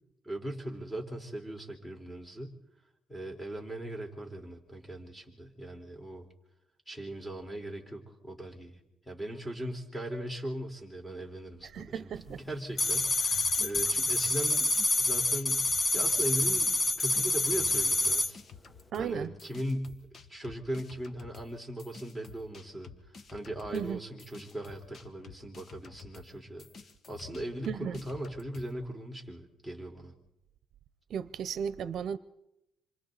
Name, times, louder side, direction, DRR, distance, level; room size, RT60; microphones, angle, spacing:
voice 1, 0.2-2.5 3.1-6.3 6.9-8.8 9.0-14.7 15.0-15.7 15.9-18.4 19.0-26.7 27.1-30.1, right 1 dB, 5° left, 4.5 m, -39 dB
voice 2, 11.6-12.4 18.9-19.3 23.7-24.0 27.7-28.0 31.1-32.2, right 8 dB, 65° right, 0.8 m, -35 dB
sound 1, 12.8-18.3, left 2 dB, 30° left, 1.2 m, -27 dB
sound 2, 12.9-16.7 17.0-28.7, left 5 dB, 50° left, 1.6 m, -51 dB
27.0 x 24.5 x 4.1 m
cardioid pair, 90°, 0 cm